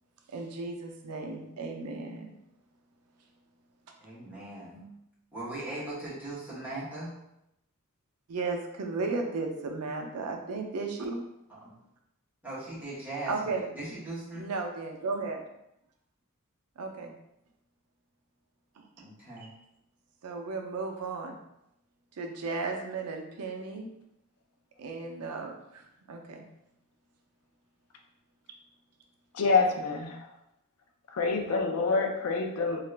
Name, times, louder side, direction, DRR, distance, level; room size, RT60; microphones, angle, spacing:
voice 1, 0.3-2.3 4.7-5.0 8.3-11.2 13.3-13.6 14.3-15.4 16.8-17.1 20.2-21.4 22.2-23.9 24.8-26.5, right 3 dB, 90° right, 2 dB, 0.5 m, -35 dB
voice 2, 4.0-4.7 5.3-7.1 11.5-11.6 12.4-14.5 19.0-19.5, right 2 dB, 5° right, -9 dB, 1.1 m, -39 dB
voice 3, 29.3-30.3 31.1-32.8, left 4 dB, 70° left, 3 dB, 0.4 m, -27 dB
2.8 x 2.4 x 3.2 m, 0.83 s
head